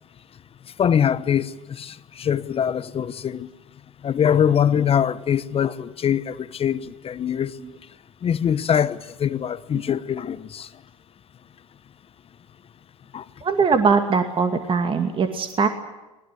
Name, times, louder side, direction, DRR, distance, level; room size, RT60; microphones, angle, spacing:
voice 1, 0.8-3.5 4.0-7.5 8.2-10.7 13.1-13.2, left 8 dB, 35° left, 1.0 m, -23 dB
voice 2, 13.4-15.7, right 5 dB, 30° right, 2.3 m, -21 dB
21.0 x 20.5 x 9.4 m
hypercardioid pair, 80°, 18 cm